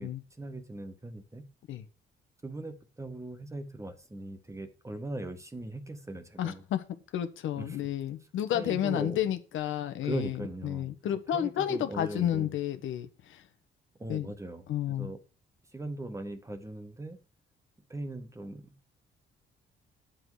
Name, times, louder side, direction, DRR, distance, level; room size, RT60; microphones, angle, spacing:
voice 1, 0.4-1.4 2.4-6.6 7.5-7.8 8.5-9.2 10.0-10.9 11.3-12.5 14.0-15.2 15.7-17.2 17.9-18.7, right 2 dB, 15° right, 1.6 m, -39 dB
voice 2, 6.4-6.8 7.1-13.5 14.1-14.3 14.7-15.1, left 11 dB, 80° left, 1.3 m, -31 dB
10.5 x 7.6 x 4.9 m
cardioid pair, 90°, 20 cm